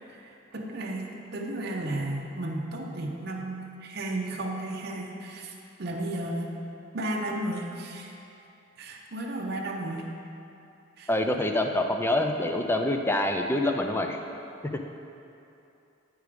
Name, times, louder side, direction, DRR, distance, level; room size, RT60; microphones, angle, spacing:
voice 1, 0.2-6.5 6.9-8.1 8.8-10.1 11.0-11.1, right 1 dB, 55° right, -1 dB, 0.8 m, -34 dB
voice 2, 11.1-14.2, left 1 dB, 10° left, 4 dB, 0.4 m, -26 dB
9.8 x 4.7 x 5.1 m, 2.8 s
head